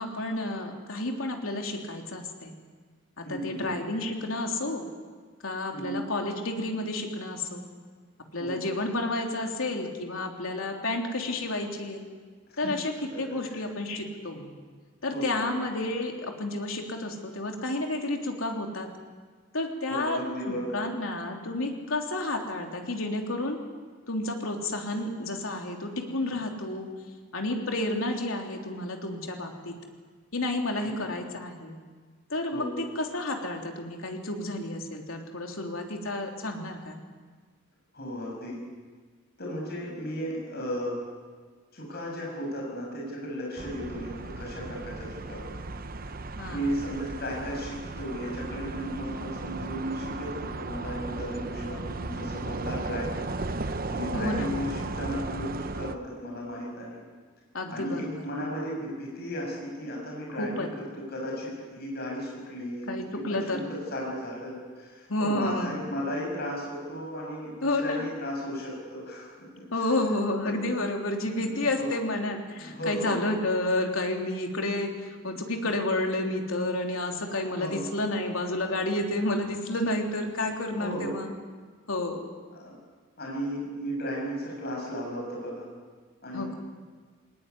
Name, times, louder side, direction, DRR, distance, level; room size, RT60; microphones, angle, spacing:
voice 1, 0.0-2.6 3.2-4.8 5.4-7.6 8.3-12.0 12.6-14.5 15.0-18.9 19.5-23.6 24.1-26.9 27.3-29.7 30.3-31.8 32.3-37.0 46.4-46.7 54.1-54.5 57.5-58.2 60.4-60.7 62.9-63.6 65.1-65.8 67.6-68.1 69.7-81.3 81.9-82.2 86.3-86.5, left 2 dB, 90° left, 2 dB, 3.3 m, -30 dB
voice 2, 3.2-3.6 5.7-6.0 8.4-8.6 12.5-12.7 15.1-15.4 19.9-20.8 30.8-31.1 32.5-32.7 37.9-38.6 39.4-41.0 41.7-45.5 46.5-53.2 53.6-57.0 57.7-62.9 63.1-69.3 70.4-70.6 71.4-71.9 72.6-73.2 75.2-75.7 77.6-77.8 80.8-81.2 82.6-82.7 83.2-85.7 86.2-86.6, equal, 50° left, -2 dB, 6.7 m, -35 dB
sound 1, 43.6-56.0, right 3 dB, 45° right, 0.8 m, -35 dB
21.5 x 19.0 x 9.7 m, 1.5 s
head